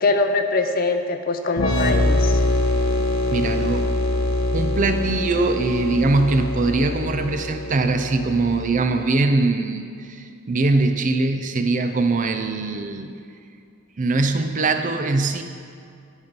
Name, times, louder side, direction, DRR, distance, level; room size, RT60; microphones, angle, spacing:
voice 1, 0.0-2.4, left 3 dB, 45° left, 7 dB, 0.5 m, -22 dB
sound 1, 1.6-9.1, left 2 dB, 80° left, 0.8 m, -24 dB
voice 2, 3.3-3.9 4.5-13.1 14.0-15.4, right 3 dB, 40° right, 7 dB, 0.5 m, -22 dB
10.5 x 5.3 x 5.4 m, 2.4 s
head